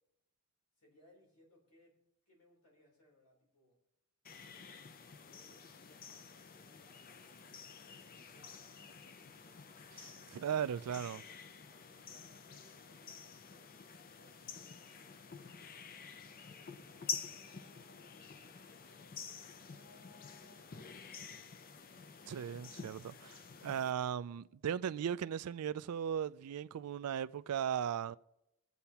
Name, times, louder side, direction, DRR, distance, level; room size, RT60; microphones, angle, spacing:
voice 1, 0.8-2.0 2.2-3.8 4.5-10.3 11.0-15.6 16.4-19.8 20.4-21.5, left 1 dB, 90° left, 3.4 m, -69 dB
sound 1, 4.2-23.9, left 6 dB, 40° left, 0.5 m, -49 dB
voice 2, 10.3-11.2 22.3-28.2, right 8 dB, 75° right, 0.4 m, -37 dB
23.0 x 8.0 x 2.9 m
head